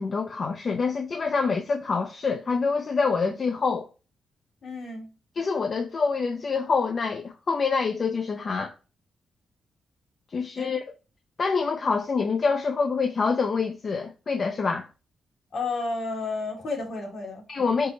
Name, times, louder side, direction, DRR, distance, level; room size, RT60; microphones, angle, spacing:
voice 1, 0.0-3.9 5.4-8.7 10.3-10.8 11.4-14.9 17.5-17.9, left 4 dB, 45° left, 0.4 m, -26 dB
voice 2, 4.6-5.1 10.5-10.7 15.5-17.4, left 3 dB, 65° left, 1.5 m, -31 dB
4.6 x 2.0 x 3.7 m
cardioid pair, 100°, 0 cm